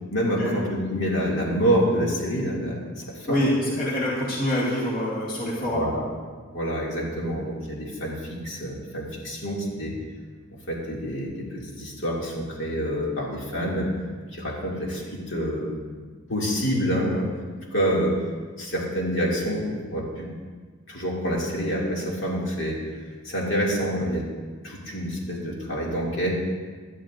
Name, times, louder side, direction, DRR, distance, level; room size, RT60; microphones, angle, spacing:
voice 1, 0.1-3.4 5.7-6.0 6.5-9.9 10.7-13.9 14.3-15.7 16.3-17.3 17.7-18.1 18.6-20.3 20.9-22.8 23.2-24.2 24.6-26.4, equal, 60° left, -4 dB, 2.4 m, -27 dB
voice 2, 3.3-5.9, left 1 dB, 40° left, -6 dB, 2.1 m, -25 dB
18.0 x 11.5 x 2.5 m, 1.5 s
head